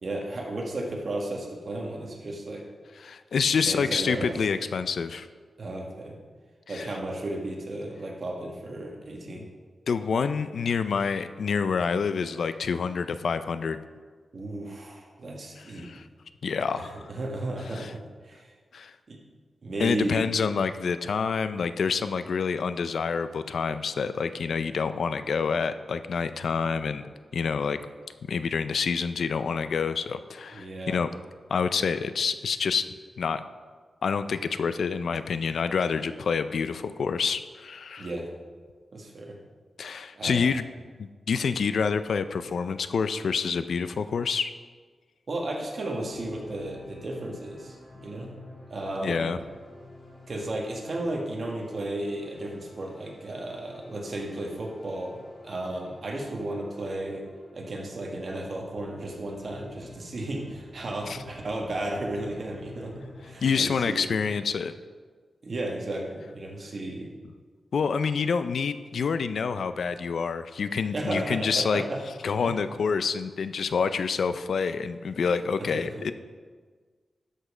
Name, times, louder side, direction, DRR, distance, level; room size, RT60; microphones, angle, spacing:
voice 1, 0.0-2.6 3.6-4.3 5.6-6.1 6.7-9.5 14.3-15.9 16.8-18.5 19.1-19.2 19.6-20.3 30.5-31.0 38.0-38.3 38.9-39.4 40.1-40.4 45.3-48.3 48.7-49.4 50.3-55.2 55.4-57.2 57.5-64.0 65.4-67.1 70.9-72.0 72.3-72.5 75.6-76.1, right 1 dB, 45° right, 0 dB, 1.7 m, -34 dB
voice 2, 3.0-5.3 6.7-6.9 9.4-9.5 9.9-13.8 15.6-16.0 16.4-17.1 17.7-17.9 18.7-18.9 19.8-27.0 27.3-27.8 28.3-31.1 31.5-32.8 33.2-33.4 34.0-38.1 39.8-40.6 41.0-44.5 49.0-49.4 61.1-61.2 63.4-64.7 67.7-71.8 72.2-76.1, left 5 dB, 70° left, 12 dB, 0.4 m, -27 dB
sound 1, 46.1-64.4, left 2 dB, 45° left, 1.9 m, -50 dB
12.5 x 5.3 x 4.9 m, 1.5 s
wide cardioid pair, 135°, 0 cm